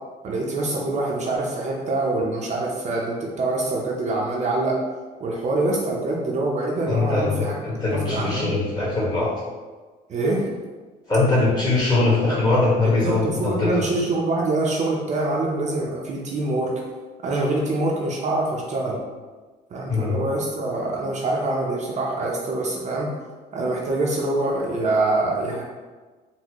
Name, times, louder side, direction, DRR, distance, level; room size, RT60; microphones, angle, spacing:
voice 1, 0.2-4.8 5.2-7.6 7.9-8.5 10.1-10.5 12.8-16.8 17.2-19.0 19.7-23.1 23.5-25.6, right 2 dB, 45° right, -2 dB, 0.5 m, -25 dB
voice 2, 6.9-9.3 11.1-13.7 19.9-20.2, left 3 dB, 25° left, -7 dB, 1.3 m, -21 dB
4.1 x 2.1 x 2.9 m, 1.3 s
cardioid pair, 110°, 17 cm